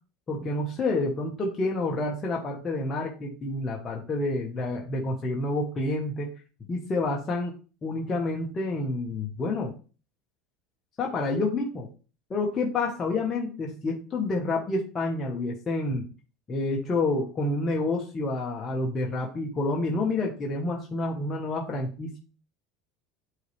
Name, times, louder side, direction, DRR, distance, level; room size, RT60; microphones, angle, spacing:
voice 1, 0.3-6.3 6.7-7.5 7.8-9.7 11.0-11.9 12.3-16.1 16.5-22.2, left 2 dB, 25° left, -1 dB, 1.4 m, -28 dB
9.1 x 4.1 x 3.4 m, 0.35 s
supercardioid pair, 115°, 0 cm